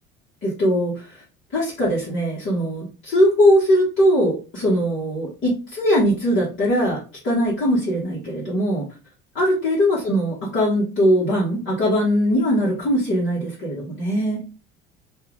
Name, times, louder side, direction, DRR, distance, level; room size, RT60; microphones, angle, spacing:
voice 1, 0.4-0.9 1.5-7.0 7.2-8.8 9.3-14.4, equal, 40° left, -6 dB, 1.3 m, -20 dB
2.7 x 2.4 x 3.4 m, 0.33 s
figure-of-eight pair, 60°, 30 cm